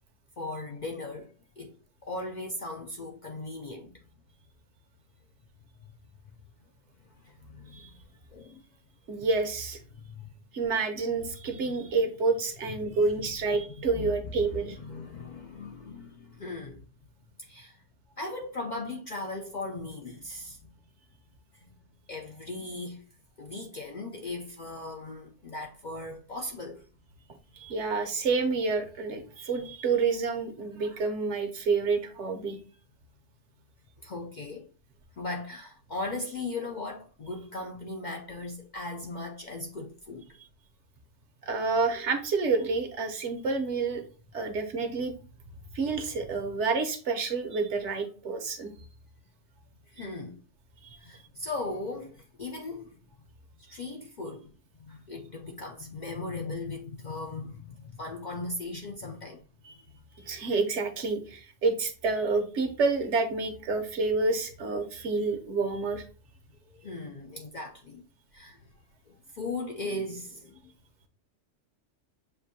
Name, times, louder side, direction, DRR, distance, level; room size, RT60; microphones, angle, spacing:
voice 1, 0.4-1.8 2.0-4.1 5.8-5.9 7.2-8.0 8.3-8.6 9.8-10.3 11.5-11.8 12.6-16.8 17.4-17.8 18.2-20.7 21.5-21.7 22.1-23.0 23.4-26.8 29.1-29.2 29.5-29.7 34.0-34.7 35.2-40.2 49.9-50.4 51.0-53.0 53.6-54.5 54.8-59.4 60.1-60.3 66.7-68.0 68.3-68.6 69.1-70.7, left 2 dB, 55° left, 0.5 m, -38 dB
voice 2, 9.1-9.8 10.5-14.8 27.6-32.6 41.4-44.0 44.3-45.1 45.7-48.7 59.6-59.7 60.3-66.0, right 4 dB, 70° right, 1.1 m, -28 dB
6.6 x 2.6 x 2.7 m
omnidirectional pair, 1.3 m